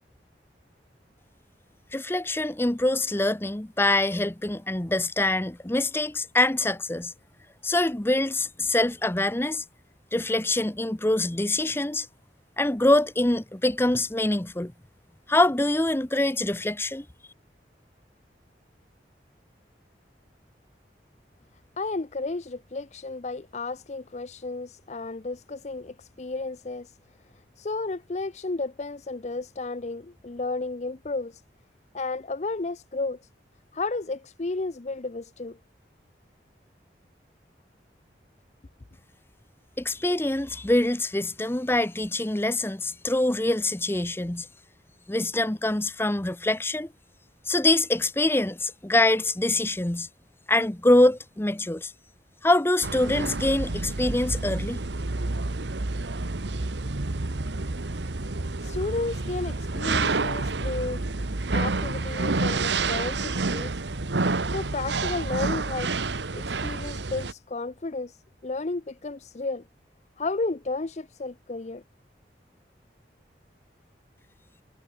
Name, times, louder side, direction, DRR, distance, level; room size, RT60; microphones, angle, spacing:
voice 1, 1.9-7.1 7.6-9.6 10.1-12.1 12.6-14.7 15.3-17.0 39.8-44.5 45.1-46.9 47.5-50.1 50.5-51.9 52.4-54.8, left 1 dB, 15° left, 0.8 m, -24 dB
voice 2, 21.8-26.9 27.6-31.3 31.9-33.2 33.7-35.6 58.6-61.0 61.5-63.7 64.5-65.9 66.3-68.1 68.4-69.6 70.2-71.8, left 3 dB, 40° left, 0.6 m, -32 dB
sound 1, 52.8-67.3, right 3 dB, 85° right, 1.3 m, -29 dB
head